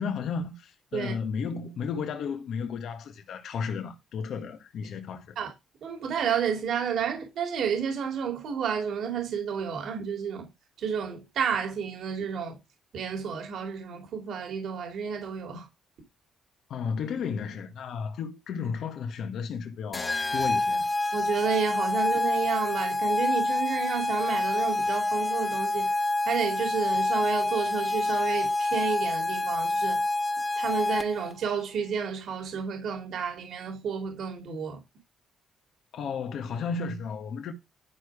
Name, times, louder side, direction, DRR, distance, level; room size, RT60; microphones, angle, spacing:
voice 1, 0.0-5.4 16.7-20.9 35.9-37.5, left 6 dB, 70° left, 1.5 m, -33 dB
voice 2, 5.8-10.5 10.8-12.6 12.9-15.7 21.1-25.9 26.3-30.0 30.6-34.8, right 7 dB, 70° right, 3.1 m, -31 dB
sound 1, 19.9-31.3, left 2 dB, 25° left, 0.9 m, -27 dB
11.5 x 4.8 x 4.9 m
cardioid pair, 90°, 0 cm